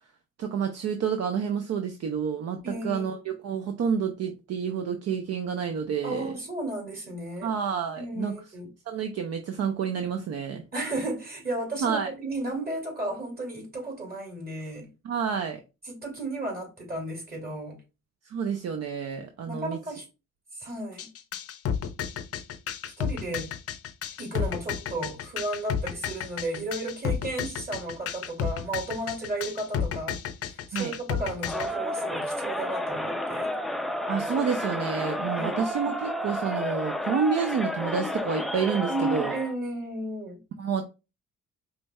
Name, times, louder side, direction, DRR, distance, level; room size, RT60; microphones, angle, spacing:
voice 1, 0.4-6.3 7.4-8.3 8.9-10.6 11.8-12.1 15.0-15.6 18.3-19.8 30.7-30.9 34.1-39.3 40.6-40.8, right 6 dB, 55° right, 0.6 m, -29 dB
voice 2, 2.6-3.2 6.0-7.5 8.0-8.7 10.7-14.9 15.8-17.8 19.5-20.1 20.5-21.1 22.8-23.5 24.2-30.2 30.5-33.6 35.4-35.7 38.9-40.4, right 2 dB, 30° right, 2.1 m, -34 dB
sound 1, 21.0-31.7, left 8 dB, 50° left, 0.6 m, -31 dB
Crowd, 31.4-39.5, left 1 dB, ahead, 0.4 m, -31 dB
5.0 x 3.1 x 2.2 m
cardioid pair, 90°, 30 cm